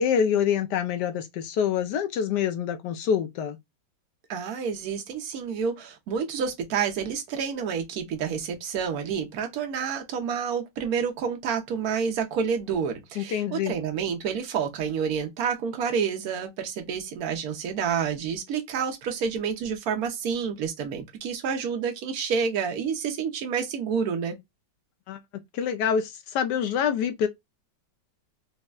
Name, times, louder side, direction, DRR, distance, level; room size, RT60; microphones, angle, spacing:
voice 1, 0.0-3.6 13.2-13.7 25.1-25.2 25.5-27.3, left 8 dB, 75° left, 1.1 m, -26 dB
voice 2, 4.3-24.3, right 6 dB, 65° right, 1.2 m, -29 dB
4.2 x 2.1 x 2.2 m
omnidirectional pair, 1.9 m